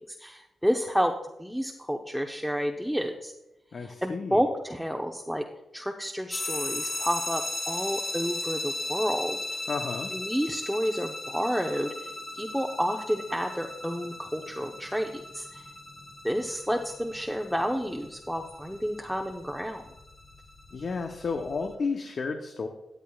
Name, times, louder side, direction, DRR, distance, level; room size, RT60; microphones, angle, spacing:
voice 1, 0.2-1.1 1.4-3.3 3.8-5.4 5.7-9.4 10.1-12.1 12.4-15.6 16.2-19.8, equal, ahead, 2 dB, 0.9 m, -30 dB
voice 2, 3.7-4.4 9.7-10.1 20.7-22.7, left 4 dB, 60° left, 5 dB, 0.8 m, -32 dB
sound 1, 6.3-21.7, left 2 dB, 40° left, 1.5 m, -37 dB
13.0 x 9.1 x 2.4 m, 0.90 s
supercardioid pair, 45°, 0 cm